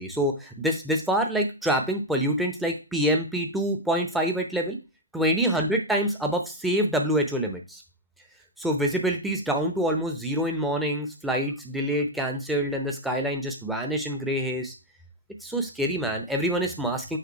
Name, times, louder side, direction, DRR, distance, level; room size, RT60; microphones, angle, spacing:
voice 1, 0.0-4.8 5.1-7.8 8.6-14.7 15.4-17.2, equal, ahead, 1 dB, 0.6 m, -26 dB
5.7 x 3.7 x 4.5 m, 0.29 s
figure-of-eight pair, 150°, 0 cm